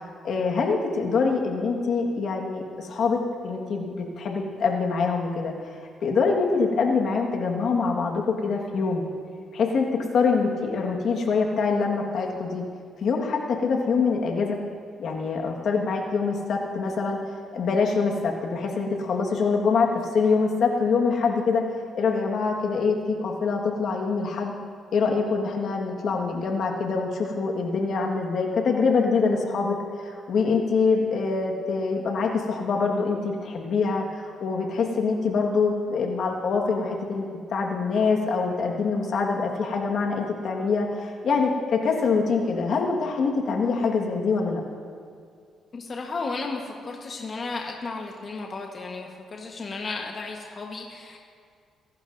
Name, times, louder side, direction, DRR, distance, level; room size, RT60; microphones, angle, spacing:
voice 1, 0.2-5.5 6.0-9.0 9.5-12.6 13.0-14.6 15.0-17.2 17.5-21.6 21.9-24.5 24.9-44.6, left 4 dB, 65° left, 1 dB, 1.6 m, -25 dB
voice 2, 45.7-51.2, left 3 dB, 40° left, 1 dB, 1.2 m, -34 dB
24.0 x 11.5 x 2.6 m, 2.2 s
cardioid pair, 90°, 0 cm